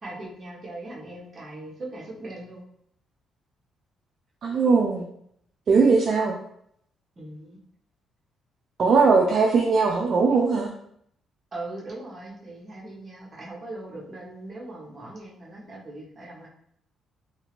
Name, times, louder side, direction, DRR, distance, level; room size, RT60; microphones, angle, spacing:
voice 1, 0.0-2.6 7.2-7.6 11.5-16.5, right 2 dB, 40° right, -4 dB, 1.0 m, -39 dB
voice 2, 4.4-5.1 5.7-6.4 8.8-10.7, right 4 dB, 55° right, 0 dB, 0.4 m, -20 dB
2.7 x 2.5 x 2.9 m, 0.70 s
cardioid pair, 90°, 0 cm